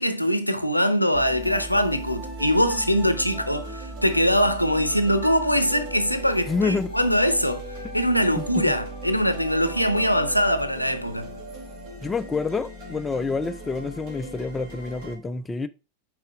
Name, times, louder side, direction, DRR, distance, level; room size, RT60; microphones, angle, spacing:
voice 1, 0.0-7.7 7.9-11.3, equal, 90° left, 0.7 m, -22 dB
sound 1, 1.1-15.2, right 1 dB, 50° right, 3.1 m, -37 dB
voice 2, 6.5-6.9 12.0-15.7, left 4 dB, 15° left, 0.4 m, -27 dB
5.3 x 4.9 x 4.8 m
figure-of-eight pair, 90°, 0 cm